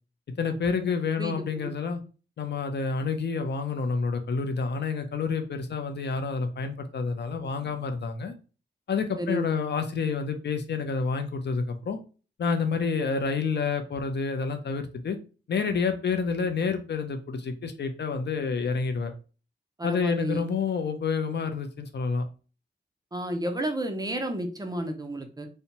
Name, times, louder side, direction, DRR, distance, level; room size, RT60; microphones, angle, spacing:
voice 1, 0.4-2.0 2.4-8.3 8.9-12.0 12.4-15.2 15.5-19.1 19.8-22.3, left 5 dB, 65° left, 6 dB, 0.4 m, -28 dB
voice 2, 9.2-9.5 19.8-20.4 23.1-25.5, right 1 dB, 20° right, 5 dB, 0.4 m, -31 dB
2.7 x 2.1 x 2.9 m, 0.35 s
wide cardioid pair, 105°, 19 cm